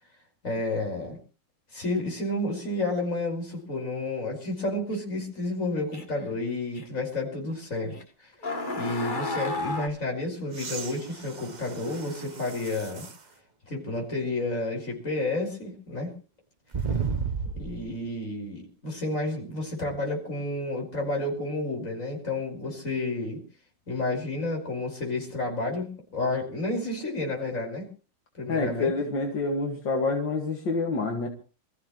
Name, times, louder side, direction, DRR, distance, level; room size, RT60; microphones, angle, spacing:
voice 1, 0.4-1.2 1.7-8.0 8.8-13.0 13.7-16.1 17.6-23.4 23.9-27.9 28.4-28.9, left 2 dB, 45° left, 1 dB, 5.7 m, -31 dB
sound 1, 4.9-5.0 5.9-6.2 6.8-6.9 7.9-8.0 8.4-9.9, left 2 dB, 30° left, 1.6 m, -32 dB
sound 2, 10.5-13.3 13.9-14.0 16.7-17.9 19.8-19.9, right 5 dB, 30° right, 0.9 m, -34 dB
voice 2, 28.5-31.3, left 3 dB, 80° left, 1 dB, 2.7 m, -27 dB
26.5 x 14.5 x 3.2 m, 0.35 s
omnidirectional pair, 2.0 m